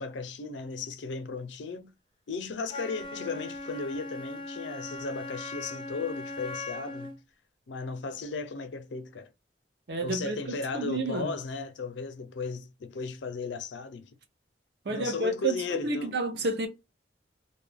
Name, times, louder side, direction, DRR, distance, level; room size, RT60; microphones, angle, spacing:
voice 1, 0.0-1.9 2.3-7.2 7.7-9.3 10.0-14.1 14.9-16.2, left 4 dB, 85° left, 0.5 m, -36 dB
Wind instrument woodwind instrument, 2.7-7.2, left 2 dB, 25° left, 0.5 m, -39 dB
voice 2, 9.9-11.3 14.9-16.7, right 2 dB, 65° right, 0.6 m, -30 dB
2.3 x 2.1 x 3.3 m
head